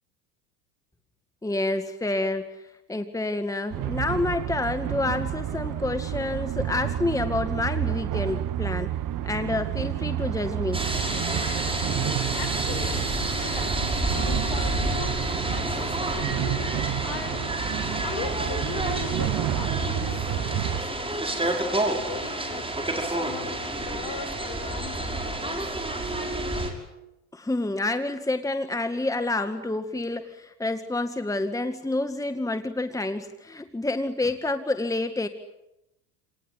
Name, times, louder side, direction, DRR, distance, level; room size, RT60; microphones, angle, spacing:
voice 1, 1.4-2.6 2.9-8.9 9.2-10.8 27.3-35.3, left 2 dB, 5° left, 8 dB, 2.0 m, -28 dB
sound 1, 3.7-20.8, right 12 dB, 45° right, 1.5 m, -30 dB
sound 2, 10.7-26.7, right 2 dB, 10° right, 6.3 m, -29 dB
voice 2, 11.6-13.0 13.4-13.7 14.1-15.2 15.5-17.4 18.0-25.6, left 6 dB, 55° left, 10 dB, 6.6 m, -39 dB
29.0 x 19.5 x 10.0 m, 0.89 s
hypercardioid pair, 85°, 46 cm